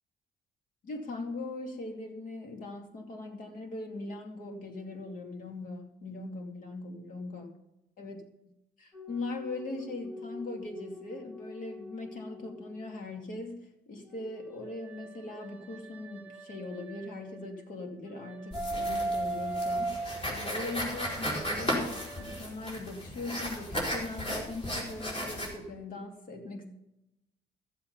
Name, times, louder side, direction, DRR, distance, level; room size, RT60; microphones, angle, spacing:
voice 1, 0.8-7.6 8.0-8.2 8.8-26.7, left 2 dB, 55° left, 3 dB, 2.6 m, -40 dB
sound 1, 8.9-13.0 14.0-17.6 18.1-22.4, right 2 dB, 10° right, 1.7 m, -39 dB
sound 2, 18.5-25.5, equal, 30° left, 4.6 m, -35 dB
14.5 x 7.8 x 5.7 m, 0.87 s
cardioid pair, 110°, 17 cm